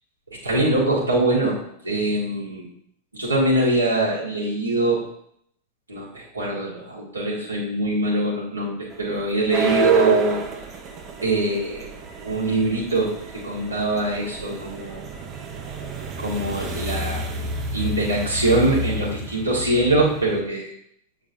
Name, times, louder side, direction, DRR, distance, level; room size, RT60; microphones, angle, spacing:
voice 1, 0.4-1.6 1.8-2.7 3.1-5.0 5.9-10.4 11.2-11.8 12.2-15.0 16.2-20.7, right 2 dB, 85° right, -6 dB, 1.6 m, -23 dB
sound 1, 8.9-20.4, right 3 dB, 30° right, 0.8 m, -29 dB
7.2 x 5.1 x 2.7 m, 0.69 s
figure-of-eight pair, 90°, 0 cm